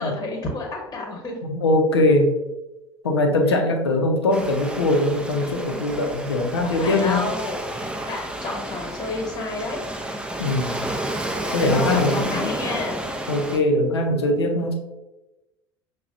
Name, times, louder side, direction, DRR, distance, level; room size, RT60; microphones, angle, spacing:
voice 1, 0.0-1.3 6.6-7.6 8.0-9.8 11.6-13.0, left 2 dB, 30° left, 1 dB, 1.2 m, -30 dB
voice 2, 1.4-2.3 3.0-7.3 10.4-10.8 11.5-12.5 13.3-14.8, left 2 dB, 80° left, 3 dB, 0.6 m, -21 dB
Waves surf, 4.3-13.6, right 1 dB, 5° right, 0.5 m, -31 dB
5.7 x 2.2 x 2.5 m, 1.0 s
figure-of-eight pair, 70°, 13 cm